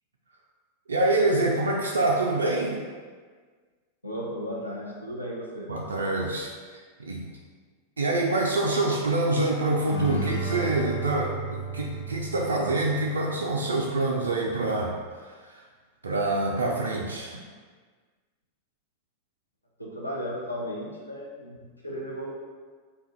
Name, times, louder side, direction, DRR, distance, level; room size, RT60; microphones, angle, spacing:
voice 1, 0.9-2.8 5.7-6.5 7.0-7.2 8.0-14.9 15.5-15.6 16.0-17.4, right 2 dB, 70° right, -2 dB, 0.3 m, -26 dB
voice 2, 4.0-5.7 17.3-17.4 19.8-22.3, equal, 85° left, -3 dB, 0.4 m, -35 dB
sound 1, 9.9-13.5, right 3 dB, 65° left, 0.8 m, -33 dB
2.5 x 2.2 x 3.7 m, 1.5 s
figure-of-eight pair, 90°, 0 cm